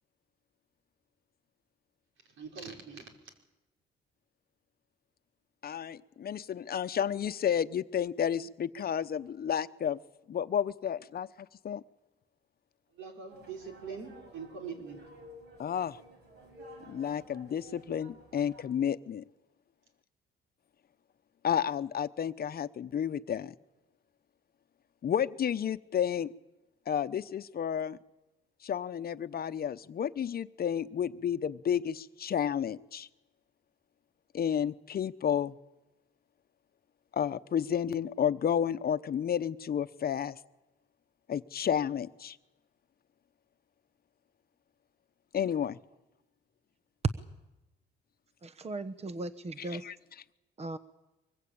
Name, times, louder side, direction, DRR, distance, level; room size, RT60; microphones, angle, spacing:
voice 1, 2.4-3.1 12.9-15.0, right 5 dB, 80° right, 3 dB, 4.9 m, -43 dB
voice 2, 5.6-10.0 10.3-11.8 15.6-16.0 16.9-19.2 21.4-23.5 25.0-26.3 26.9-28.0 28.6-33.1 34.3-35.6 37.1-40.4 41.3-42.4 45.3-45.8 49.8-49.9, left 8 dB, 50° left, 12 dB, 0.9 m, -31 dB
sound 1, 13.3-18.6, equal, 60° right, 7.9 m, -53 dB
voice 3, 48.4-49.9 50.6-50.8, right 2 dB, 30° right, 12 dB, 1.1 m, -38 dB
24.0 x 21.5 x 8.7 m, 1.0 s
cardioid pair, 90°, 20 cm